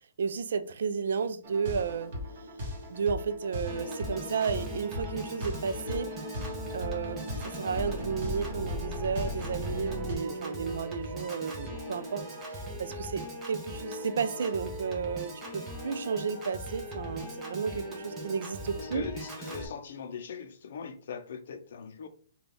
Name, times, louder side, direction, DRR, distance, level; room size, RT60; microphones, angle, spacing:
voice 1, 0.2-2.1 2.9-6.1 6.7-12.2 12.5-19.1, right 6 dB, 75° right, 0.4 m, -33 dB
sound 1, 1.4-10.1, left 1 dB, 40° right, 1.0 m, -37 dB
Piano / Organ, 3.7-19.7, right 1 dB, 10° right, 0.6 m, -40 dB
voice 2, 18.8-22.1, left 6 dB, 55° left, 0.5 m, -40 dB
3.9 x 2.3 x 3.3 m
hypercardioid pair, 175°, 0 cm